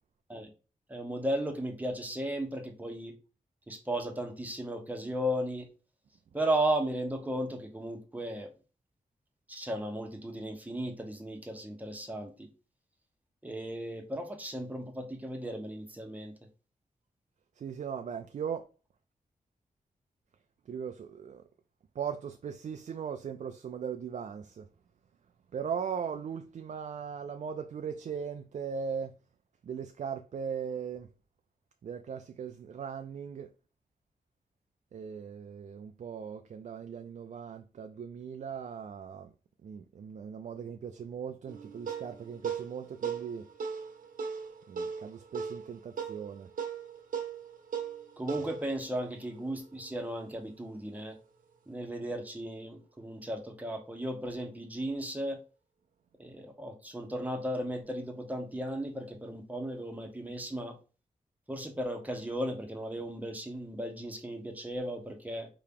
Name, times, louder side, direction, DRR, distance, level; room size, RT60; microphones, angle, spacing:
voice 1, 0.9-3.2 3.7-5.7 6.3-8.5 9.5-12.5 13.4-16.3 48.2-51.2 51.7-55.4 56.2-60.8 61.5-65.5, right 1 dB, 10° right, 1.1 m, -35 dB
voice 2, 17.6-18.7 20.7-21.4 22.0-24.7 25.5-29.1 29.6-31.1 31.8-33.5 34.9-39.3 39.6-43.5 44.7-46.5, right 7 dB, 55° right, 0.4 m, -39 dB
sound 1, 41.5-50.2, right 6 dB, 75° right, 1.0 m, -39 dB
4.9 x 2.8 x 3.6 m
wide cardioid pair, 105°, 14 cm